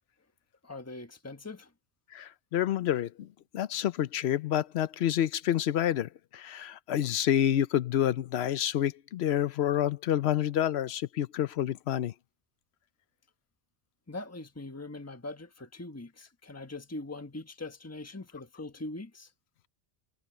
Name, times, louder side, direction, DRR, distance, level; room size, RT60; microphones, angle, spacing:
voice 1, 0.6-1.7 14.1-19.3, left 2 dB, 15° left, 1.4 m, -42 dB
voice 2, 2.1-3.3 3.5-12.1, left 11 dB, 85° left, 0.9 m, -28 dB
omnidirectional pair, 1.1 m